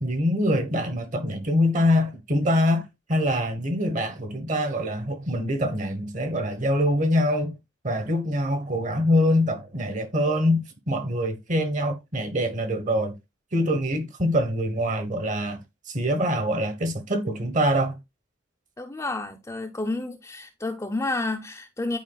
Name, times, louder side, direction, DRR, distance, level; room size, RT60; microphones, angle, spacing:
voice 1, 0.0-7.6 7.8-13.2 13.5-15.6 15.9-18.0, equal, 40° right, 1.0 m, -24 dB
voice 2, 18.8-22.0, left 2 dB, 15° left, 0.5 m, -30 dB
11.0 x 4.6 x 2.2 m
head